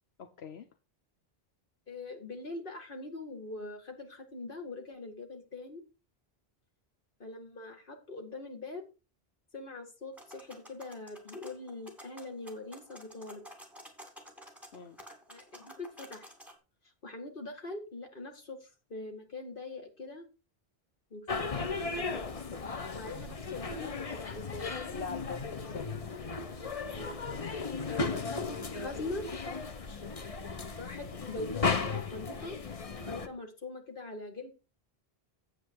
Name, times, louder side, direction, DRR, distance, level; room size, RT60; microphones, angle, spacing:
voice 1, 1.9-5.8 7.2-8.9 9.5-13.4 15.3-16.3 17.0-20.3 21.1-22.2 22.9-24.7 26.9-29.3 30.7-32.6 33.0-34.5, left 2 dB, 55° left, 4 dB, 2.2 m, -43 dB
sound 1, 10.1-16.5, equal, ahead, 2.6 m, -52 dB
sound 2, 21.3-33.3, left 4 dB, 35° left, 0.9 m, -36 dB
voice 2, 24.8-26.2 27.8-28.0, left 6 dB, 80° left, 6 dB, 1.2 m, -43 dB
9.4 x 8.0 x 4.6 m, 0.31 s
omnidirectional pair, 1.1 m